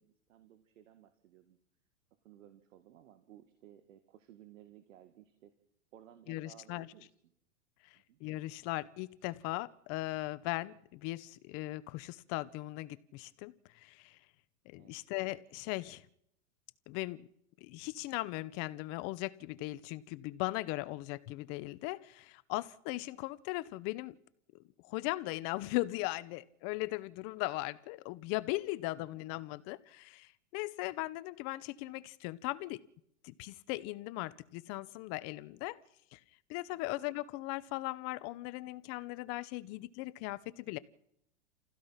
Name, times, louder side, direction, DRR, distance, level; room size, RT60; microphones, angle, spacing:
voice 1, 0.0-1.6 2.2-5.5 5.9-7.3 7.9-8.2 14.8-15.0 29.0-29.2 36.7-36.9, right 11 dB, 75° right, 9 dB, 2.1 m, -58 dB
voice 2, 6.3-6.9 7.8-14.2 14.7-16.0 16.9-17.2 17.6-24.2 24.8-32.8 33.2-35.8 36.1-36.2 36.5-40.8, left 19 dB, 40° left, 17 dB, 0.9 m, -38 dB
28.0 x 16.0 x 5.8 m, 0.74 s
supercardioid pair, 140°, 39 cm